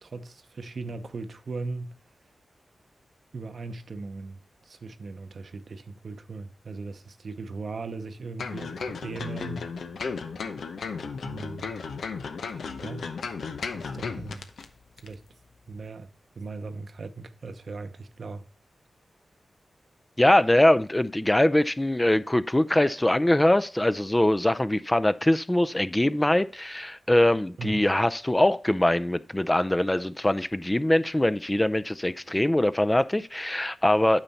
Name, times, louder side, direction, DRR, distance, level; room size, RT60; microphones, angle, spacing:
voice 1, 0.0-2.0 3.3-9.7 11.2-11.7 12.5-13.1 13.7-14.5 15.0-15.2 15.7-16.1 16.4-18.4 27.6-27.8, right 3 dB, 65° right, 0.8 m, -38 dB
sound 1, 8.4-14.7 15.0-15.1, left 5 dB, 85° left, 0.8 m, -35 dB
voice 2, 20.2-34.2, left 1 dB, 15° left, 0.5 m, -22 dB
9.0 x 5.8 x 4.1 m
cardioid pair, 50°, 0 cm